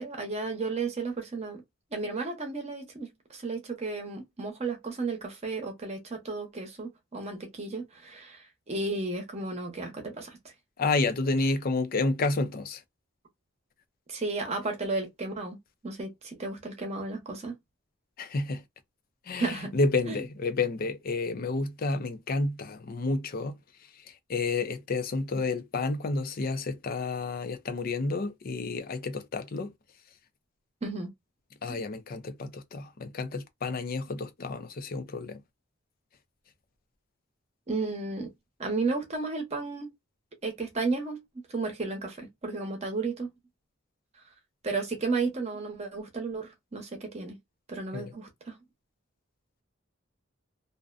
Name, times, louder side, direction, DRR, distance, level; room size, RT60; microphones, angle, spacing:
voice 1, 0.0-1.6 1.9-10.4 14.1-15.6 15.8-17.6 19.3-19.7 20.1-20.2 30.8-31.1 31.7-31.8 37.7-38.3 38.6-39.9 40.4-43.3 44.6-47.4 47.7-48.6, right 3 dB, 30° right, 0.8 m, -33 dB
voice 2, 10.8-12.8 18.2-18.6 19.3-23.5 24.1-29.7 31.6-35.4 47.9-48.1, left 3 dB, 45° left, 0.4 m, -30 dB
2.5 x 2.1 x 2.3 m
head